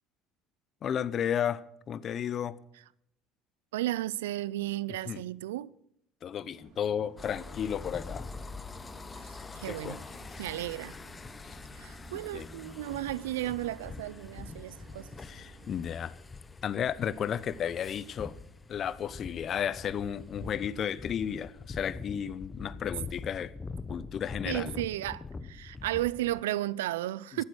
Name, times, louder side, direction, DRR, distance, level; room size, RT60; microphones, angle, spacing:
voice 1, 0.8-2.6 5.1-5.2 6.2-8.3 9.6-10.0 10.3-10.5 12.3-12.5 15.2-16.2 16.6-18.4 18.7-23.5 23.9-24.7, left 8 dB, 45° left, 0.9 m, -33 dB
voice 2, 3.7-5.7 9.2-9.3 9.6-10.0 10.4-11.0 11.8-15.1 24.4-27.4, right 15 dB, 85° right, 0.5 m, -34 dB
sound 1, 6.5-15.8, right 5 dB, 60° right, 2.0 m, -55 dB
sound 2, 7.2-26.4, left 4 dB, 25° left, 1.1 m, -44 dB
14.5 x 12.0 x 6.3 m
hypercardioid pair, 70°, 0 cm